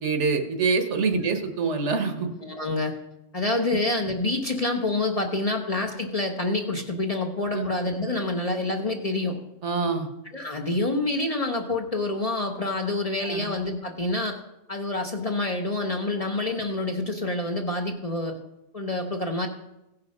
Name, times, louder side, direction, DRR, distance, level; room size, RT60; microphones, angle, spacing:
voice 1, 0.0-2.3 7.5-7.7 9.6-10.1 13.2-13.5 16.2-16.3, right 4 dB, 65° right, 6 dB, 1.4 m, -25 dB
voice 2, 2.4-2.9 3.3-9.4 10.3-14.4 14.7-18.4 18.7-19.5, left 2 dB, 35° left, 3 dB, 0.8 m, -27 dB
16.0 x 5.7 x 5.3 m, 0.94 s
omnidirectional pair, 1.3 m